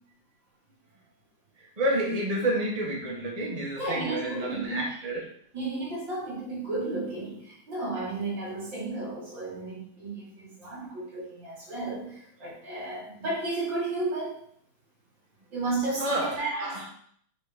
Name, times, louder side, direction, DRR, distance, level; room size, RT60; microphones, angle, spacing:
voice 1, 1.6-5.2 16.0-16.8, right 1 dB, 20° right, -3 dB, 1.5 m, -29 dB
voice 2, 3.8-4.9 5.5-14.4 15.5-16.8, right 2 dB, 75° right, -5 dB, 2.9 m, -33 dB
5.8 x 4.2 x 5.1 m, 0.63 s
omnidirectional pair, 2.0 m